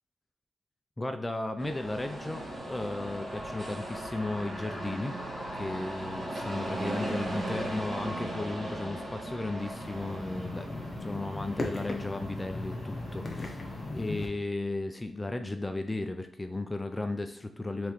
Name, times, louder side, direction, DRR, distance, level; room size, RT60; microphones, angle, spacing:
voice 1, 1.0-5.2 5.6-10.7 11.0-17.9, left 2 dB, 20° left, 7 dB, 0.4 m, -35 dB
sound 1, 1.6-13.9, right 1 dB, 55° right, 1.5 m, -38 dB
sound 2, 9.6-14.3, left 2 dB, 40° left, 0.8 m, -38 dB
3.5 x 3.2 x 3.0 m, 0.63 s
cardioid pair, 65°, 0 cm